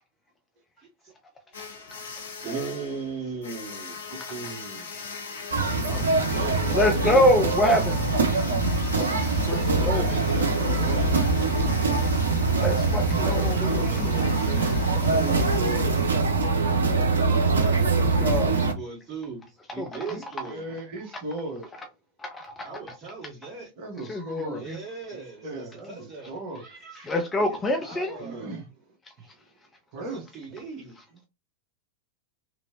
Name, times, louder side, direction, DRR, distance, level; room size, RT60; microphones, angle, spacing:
voice 1, 0.8-1.1 2.4-4.1 5.8-7.2 9.5-11.2 13.3-14.7 17.2-17.9 18.3-19.4 19.7-20.6 22.6-23.7 24.5-27.1 27.4-28.5 30.0-30.1 30.3-31.0, right 4 dB, 15° right, 1.9 m, -38 dB
sound 1, 1.5-16.0, left 5 dB, 65° left, 0.8 m, -40 dB
voice 2, 4.1-4.9 10.8-10.9 13.1-13.8 14.8-16.8 20.4-21.9 23.8-24.7 25.1-26.6 28.2-28.7 29.2-29.3 29.9-30.2 30.5-30.6, right 2 dB, 45° right, 0.9 m, -37 dB
sound 2, 5.5-18.7, right 3 dB, 70° right, 0.6 m, -23 dB
voice 3, 6.7-8.1 9.0-10.1 12.6-14.1 18.0-18.5 19.8-20.2 22.2-22.5 24.0-24.8 27.0-28.2, left 1 dB, 15° left, 0.5 m, -26 dB
3.0 x 2.6 x 2.5 m
figure-of-eight pair, 90°, 0 cm